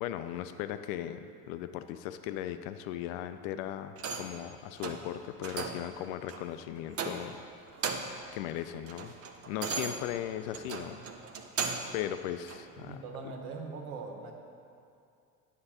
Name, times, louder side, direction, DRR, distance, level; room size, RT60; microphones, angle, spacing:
voice 1, 0.0-7.4 8.3-9.1 9.5-11.0 11.9-13.0, left 11 dB, 60° left, 10 dB, 0.5 m, -37 dB
sound 1, 4.0-4.4 4.8-5.1 5.4-5.9 6.3-6.5 6.9-7.4 7.7-8.3 8.6-12.0 12.5-12.6, right 5 dB, 30° right, 0.6 m, -37 dB
voice 2, 12.9-14.3, right 4 dB, 70° right, 3 dB, 1.1 m, -41 dB
9.4 x 6.7 x 2.9 m, 2.5 s
hypercardioid pair, 65°, 48 cm